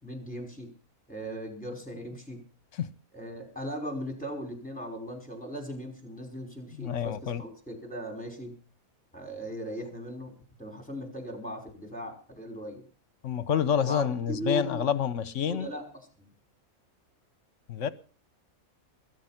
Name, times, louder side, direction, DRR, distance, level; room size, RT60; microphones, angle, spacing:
voice 1, 0.0-0.7 1.1-2.4 3.1-8.5 9.1-10.3 10.6-12.8 13.8-15.1 15.5-15.8 16.2-16.3, equal, 5° left, 5.2 m, -38 dB
voice 2, 6.8-7.4 13.2-15.7 17.7-17.9, left 8 dB, 65° left, 1.2 m, -28 dB
21.0 x 9.1 x 5.9 m
omnidirectional pair, 1.5 m